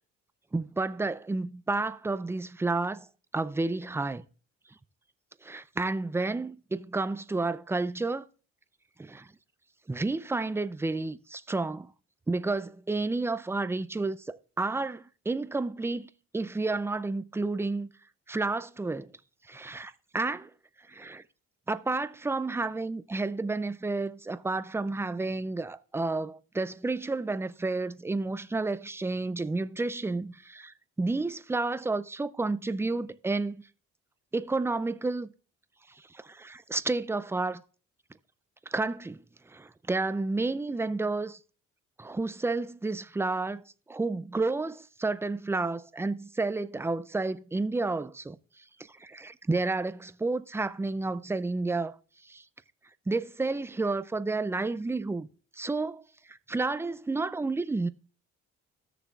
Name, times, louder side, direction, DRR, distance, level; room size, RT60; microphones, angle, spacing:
voice 1, 0.5-3.1 3.3-4.2 5.4-8.2 9.0-9.3 9.9-11.9 12.3-17.9 18.3-19.1 19.5-20.5 20.9-21.2 21.7-33.6 34.3-35.3 36.1-37.6 38.7-39.2 39.5-41.4 42.0-43.6 43.9-48.4 49.0-52.0 52.3-52.4 53.1-55.3 55.6-56.0 56.3-57.9, right 3 dB, 10° right, 0.4 m, -31 dB
15.5 x 6.7 x 2.4 m
cardioid pair, 90°, 30 cm